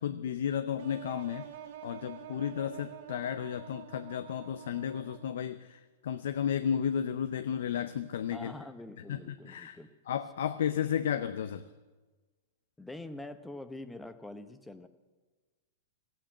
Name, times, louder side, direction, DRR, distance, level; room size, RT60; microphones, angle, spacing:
voice 1, 0.0-1.5 1.8-8.5 9.1-9.8 10.1-11.6, left 8 dB, 75° left, 11 dB, 0.6 m, -33 dB
sound 1, 0.8-5.6, right 9 dB, 65° right, 2.0 m, -48 dB
voice 2, 8.3-9.9 12.8-14.9, left 2 dB, 5° left, 10 dB, 0.9 m, -45 dB
15.0 x 9.0 x 8.5 m, 1.3 s
hypercardioid pair, 125°, 0 cm